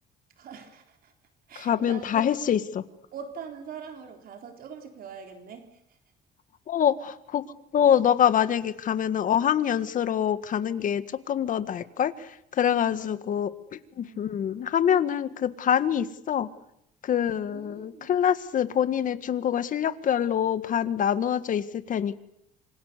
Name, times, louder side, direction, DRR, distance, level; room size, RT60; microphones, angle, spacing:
voice 1, 0.4-1.1 1.5-2.3 3.1-6.0 12.9-13.5 14.0-14.3 17.1-18.2, right 6 dB, 60° right, 5 dB, 3.8 m, -43 dB
voice 2, 1.6-2.8 6.7-7.4 7.7-12.3 12.6-13.5 14.0-16.5 17.0-22.1, left 9 dB, 50° left, 12 dB, 1.8 m, -25 dB
27.0 x 26.0 x 6.8 m, 0.77 s
cardioid pair, 110°, 17 cm